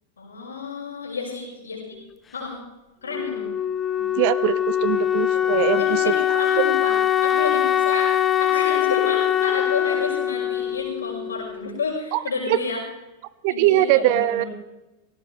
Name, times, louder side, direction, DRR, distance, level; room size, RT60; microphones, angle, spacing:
voice 1, 0.2-2.0 2.3-2.6 3.0-3.5 3.9-4.0 5.3-7.0 7.2-8.1 8.4-12.8 13.5-14.5, left 4 dB, 70° left, -3 dB, 6.5 m, -31 dB
Wind instrument woodwind instrument, 3.1-11.8, left 11 dB, 20° left, 0.8 m, -22 dB
voice 2, 4.2-6.0 6.3-6.6 12.1-12.2 12.5-12.6 13.4-14.4, right 15 dB, 45° right, 17 dB, 0.7 m, -21 dB
19.0 x 17.0 x 3.6 m, 1.0 s
figure-of-eight pair, 90°, 0 cm